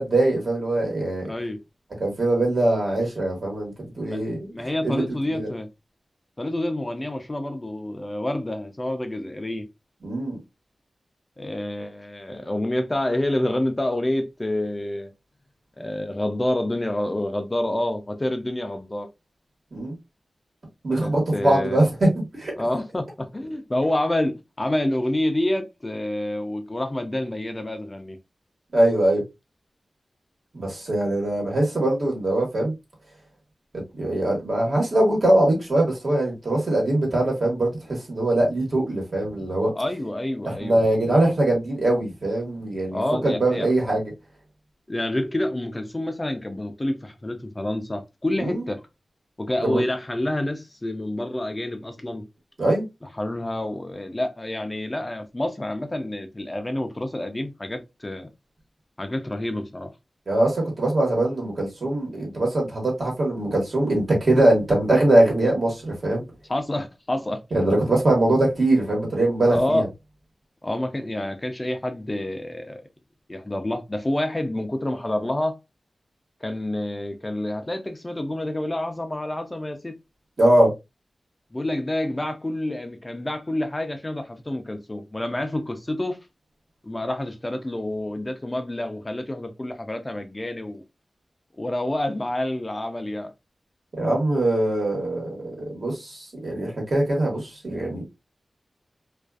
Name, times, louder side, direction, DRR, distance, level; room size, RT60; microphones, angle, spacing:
voice 1, 0.0-1.3 2.0-5.5 10.0-10.4 19.7-19.9 20.8-22.5 28.7-29.2 30.5-32.7 34.0-39.7 40.4-44.1 48.4-48.6 49.6-49.8 52.6-52.9 60.3-66.2 67.5-69.9 80.4-80.7 94.0-95.4 95.7-98.0, right 1 dB, 60° right, 1.2 m, -22 dB
voice 2, 1.3-1.6 4.1-4.2 4.5-5.7 6.4-9.7 11.4-15.1 15.8-19.1 21.0-21.8 22.6-28.2 39.7-40.8 42.9-43.7 44.9-48.8 49.4-52.2 53.2-58.3 59.0-59.9 66.5-67.4 69.5-69.8 70.6-72.8 73.3-75.6 76.4-79.9 81.5-86.2 86.8-90.8 91.6-93.3, left 1 dB, 25° left, 0.4 m, -28 dB
2.4 x 2.3 x 2.3 m
wide cardioid pair, 90°, 0 cm